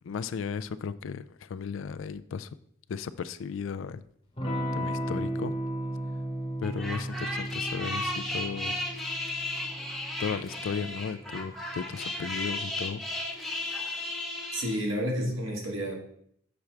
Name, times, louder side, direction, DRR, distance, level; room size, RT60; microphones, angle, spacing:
voice 1, 0.0-2.5 2.9-4.0 4.7-5.5 6.6-8.7 10.2-13.0, left 6 dB, 75° left, 14 dB, 0.3 m, -35 dB
Electric guitar / Strum, 4.4-12.7, right 1 dB, 25° left, 0.9 m, -36 dB
sound 1, 6.6-14.8, left 1 dB, ahead, 0.9 m, -34 dB
voice 2, 14.5-15.9, equal, 75° right, 0 dB, 1.6 m, -30 dB
7.0 x 5.8 x 3.3 m, 0.68 s
head